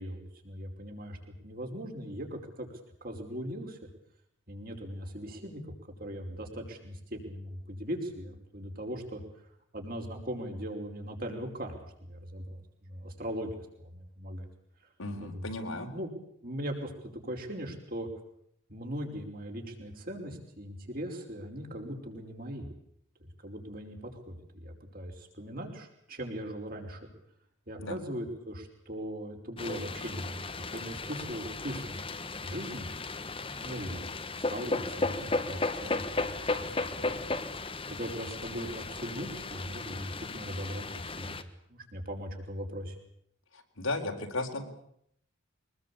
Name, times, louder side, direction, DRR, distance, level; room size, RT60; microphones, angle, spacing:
voice 1, 0.0-2.7 3.0-3.8 4.5-5.7 6.0-9.2 9.7-11.7 12.0-13.5 13.8-14.5 15.2-15.5 15.9-16.1 16.4-16.9 17.2-18.1 18.7-22.7 23.4-27.1 27.7-32.0 32.4-32.9 33.6-34.0 34.5-37.3 37.9-43.0, equal, 45° right, 2 dB, 5.3 m, -39 dB
voice 2, 15.0-15.9 27.8-28.0 43.5-44.6, left 2 dB, 85° left, 3 dB, 4.2 m, -35 dB
sound 1, 29.6-41.4, left 3 dB, 25° left, 1.4 m, -35 dB
24.0 x 20.5 x 8.6 m, 0.71 s
head